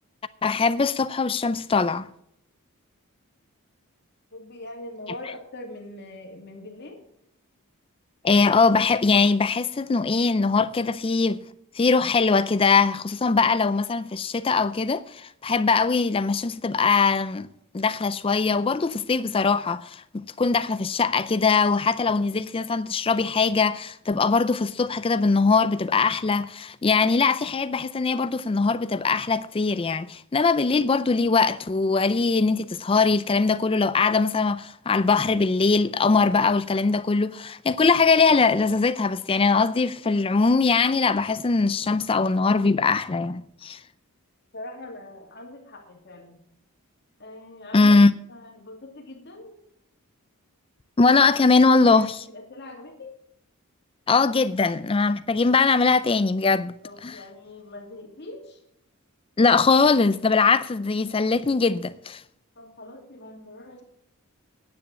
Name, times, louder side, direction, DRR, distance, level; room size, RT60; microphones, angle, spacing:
voice 1, 0.4-2.1 8.2-11.4 11.7-17.5 17.7-43.8 47.7-48.1 51.0-52.2 54.1-56.7 57.0-57.2 59.4-62.2, left 4 dB, 25° left, 0.4 m, -21 dB
voice 2, 4.3-7.0 44.5-46.4 47.2-47.9 48.3-49.6 51.9-53.1 56.8-58.6 62.6-63.8, left 1 dB, 50° left, 2.4 m, -42 dB
9.8 x 9.7 x 6.2 m
head